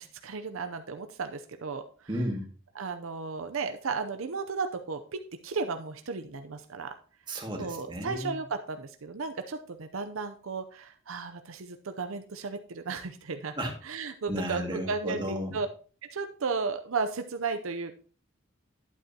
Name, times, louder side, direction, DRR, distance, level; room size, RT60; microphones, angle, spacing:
voice 1, 0.0-2.1 2.8-6.9 7.6-13.6 13.8-15.7 16.0-18.0, right 4 dB, 75° right, 7 dB, 0.6 m, -34 dB
voice 2, 2.1-2.4 7.3-8.4 13.6-13.8 14.3-15.6, equal, 25° right, 1 dB, 2.0 m, -33 dB
11.5 x 8.2 x 2.8 m, 0.40 s
head